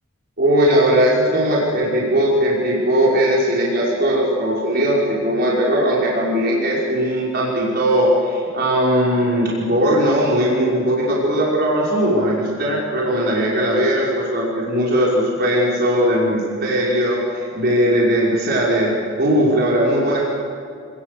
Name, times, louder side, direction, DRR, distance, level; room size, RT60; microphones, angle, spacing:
voice 1, 0.4-20.2, equal, 50° right, -6 dB, 5.5 m, -19 dB
28.5 x 20.0 x 6.9 m, 2.4 s
head